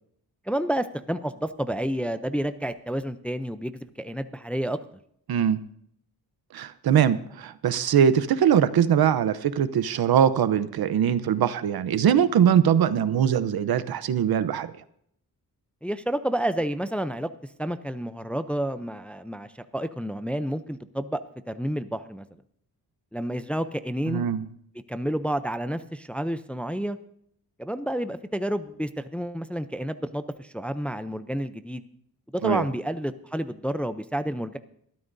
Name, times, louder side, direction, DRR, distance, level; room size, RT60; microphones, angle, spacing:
voice 1, 0.5-3.7 4.0-4.8 15.8-17.3 17.6-19.5 19.7-21.2 21.5-22.2 23.1-24.2 24.9-27.0 27.6-31.8 32.3-34.6, right 1 dB, 5° left, 10 dB, 0.5 m, -29 dB
voice 2, 5.3-5.6 6.5-14.7 24.1-24.4 32.4-32.7, right 8 dB, 70° right, 13 dB, 0.8 m, -22 dB
21.5 x 13.5 x 2.7 m, 0.68 s
cardioid pair, 110°, 38 cm